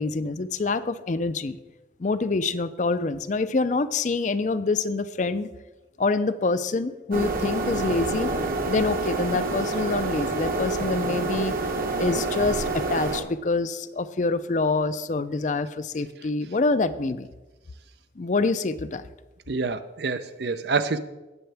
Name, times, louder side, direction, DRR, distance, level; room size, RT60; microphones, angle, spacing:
voice 1, 0.0-1.6 2.0-5.5 6.0-8.3 8.7-11.5 12.0-17.3 18.2-19.0, left 3 dB, 40° left, 13 dB, 0.4 m, -26 dB
sound 1, 7.1-13.2, right 2 dB, 50° right, 1.1 m, -27 dB
voice 2, 19.5-21.0, right 4 dB, 65° right, 12 dB, 0.6 m, -27 dB
18.0 x 6.7 x 3.4 m, 1.1 s
head